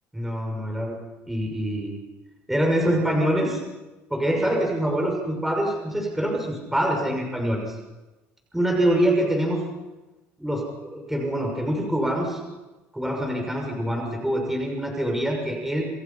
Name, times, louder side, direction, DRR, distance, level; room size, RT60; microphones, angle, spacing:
voice 1, 0.1-0.9 1.3-2.0 2.5-3.6 4.1-7.7 8.5-9.6 10.4-12.4 12.9-15.8, right 1 dB, 5° right, 1 dB, 6.4 m, -25 dB
28.5 x 27.5 x 5.8 m, 1.1 s
cardioid pair, 110°, 5 cm